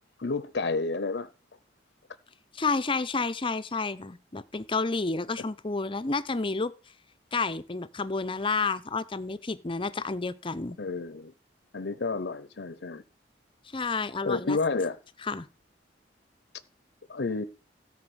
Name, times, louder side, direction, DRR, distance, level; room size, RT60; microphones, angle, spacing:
voice 1, 0.2-1.3 10.8-11.3 11.7-13.0 14.2-15.0 17.1-17.4, left 3 dB, 65° left, 0.7 m, -30 dB
voice 2, 2.5-6.7 7.3-10.8 13.7-14.6 15.3-15.5, left 4 dB, 30° left, 0.6 m, -30 dB
13.5 x 4.9 x 7.8 m
head